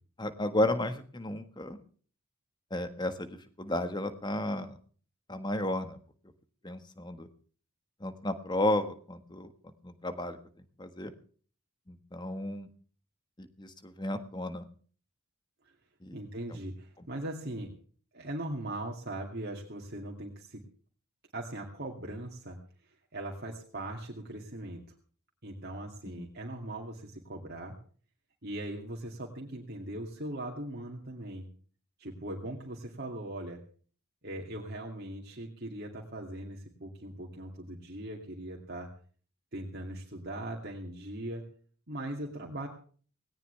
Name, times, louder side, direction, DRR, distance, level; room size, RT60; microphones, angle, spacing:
voice 1, 0.2-1.8 2.7-4.7 5.3-6.0 6.6-7.3 8.0-10.4 10.8-11.1 11.9-12.7 13.4-14.6 16.0-16.1 16.5-16.6 17.0-17.1 26.2-26.3, left 1 dB, 20° left, 9 dB, 1.5 m, -33 dB
voice 2, 16.1-17.7 18.1-20.6 21.3-22.6 23.1-24.8 25.4-27.7 28.4-31.5 32.0-33.6 34.2-38.9 39.5-41.4 41.9-42.7, right 1 dB, 45° right, 0 dB, 2.5 m, -40 dB
18.5 x 18.5 x 3.4 m, 0.43 s
head